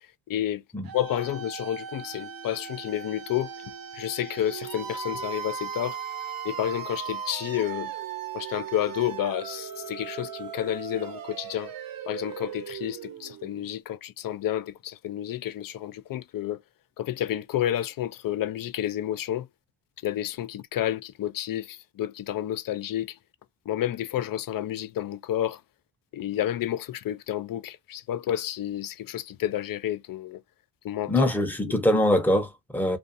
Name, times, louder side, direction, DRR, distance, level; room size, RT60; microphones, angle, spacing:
voice 1, 0.3-0.6 0.9-3.5 3.9-6.0 6.4-7.9 8.3-11.7 12.0-16.6 17.0-19.5 20.0-23.2 23.7-25.6 26.1-30.4 30.8-31.3, left 12 dB, 50° left, 0.4 m, -30 dB
sound 1, 0.9-13.7, right 8 dB, 50° right, 0.6 m, -38 dB
voice 2, 31.1-33.0, left 1 dB, 5° left, 0.7 m, -23 dB
2.5 x 2.2 x 2.5 m
cardioid pair, 100°, 44 cm